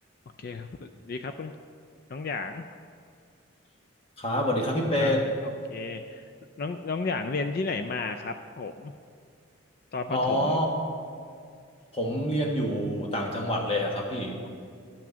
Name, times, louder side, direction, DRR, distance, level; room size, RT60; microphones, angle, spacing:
voice 1, 0.4-1.5 2.1-2.6 5.0-5.3 5.7-6.2 6.6-8.9 9.9-10.6, left 4 dB, 45° left, 8 dB, 0.3 m, -33 dB
voice 2, 4.2-5.3 10.1-10.7 11.9-14.4, equal, 30° left, 0 dB, 1.3 m, -27 dB
10.5 x 6.0 x 7.0 m, 2.2 s
head